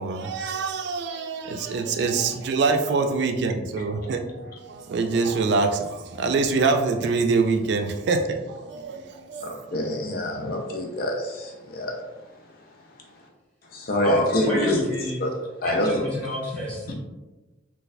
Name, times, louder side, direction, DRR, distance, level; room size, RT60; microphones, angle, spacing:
voice 1, 0.0-9.6, right 4 dB, 65° right, 5 dB, 0.3 m, -25 dB
voice 2, 9.4-12.0 13.7-14.8 15.2-15.3 15.6-16.0, left 1 dB, 55° left, 1 dB, 0.5 m, -25 dB
voice 3, 14.0-15.3 15.6-16.9, left 1 dB, 5° left, -8 dB, 1.3 m, -30 dB
4.0 x 2.3 x 2.6 m, 1.1 s
head